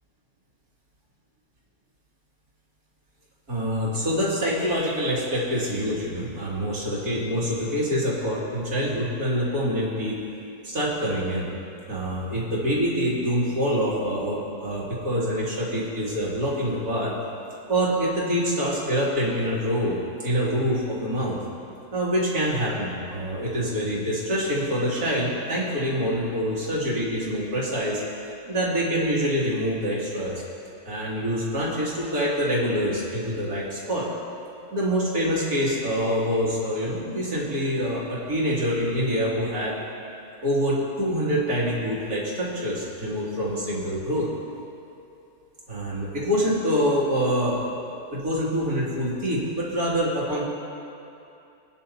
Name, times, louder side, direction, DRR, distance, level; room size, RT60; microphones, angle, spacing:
voice 1, 3.5-10.2 10.6-11.5 11.9-17.1 17.7-21.4 21.9-28.0 28.5-30.4 30.8-34.1 34.7-39.8 40.4-44.3 45.7-47.7 48.1-50.4, equal, 70° right, -6 dB, 3.2 m, -25 dB
26.0 x 9.9 x 2.9 m, 2.7 s
omnidirectional pair, 1.6 m